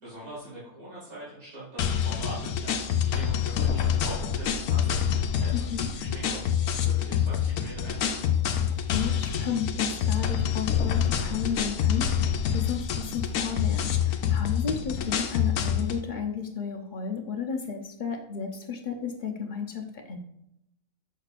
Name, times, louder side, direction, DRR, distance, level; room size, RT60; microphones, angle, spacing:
voice 1, 0.0-8.2, right 1 dB, 85° right, -8 dB, 2.7 m, -42 dB
sound 1, 1.8-16.0, left 8 dB, 75° left, 1.0 m, -27 dB
voice 2, 5.5-5.9 8.6-20.2, left 6 dB, 45° left, 3 dB, 0.7 m, -33 dB
6.7 x 6.4 x 2.4 m, 0.80 s
omnidirectional pair, 1.4 m